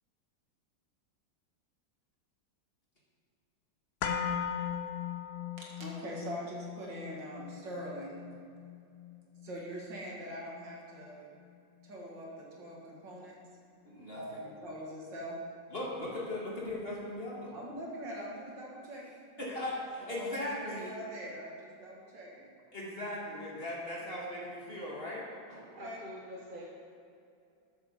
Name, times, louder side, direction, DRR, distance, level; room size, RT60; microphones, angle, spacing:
sound 1, 4.0-12.1 12.4-12.5, left 8 dB, 65° left, 1.1 m, -40 dB
voice 1, 5.6-8.2 9.4-11.3 11.8-13.4 14.1-15.4 17.5-19.0 19.4-19.5 20.1-20.5 20.7-22.5 25.5-26.0, equal, 70° right, -3 dB, 2.6 m, -43 dB
voice 2, 13.8-14.4 15.7-17.5 19.4-20.9 22.7-25.7, left 1 dB, 30° left, -5 dB, 2.1 m, -38 dB
voice 3, 25.8-26.6, equal, 30° right, -4 dB, 1.1 m, -45 dB
8.2 x 8.0 x 6.9 m, 2.5 s
omnidirectional pair, 2.0 m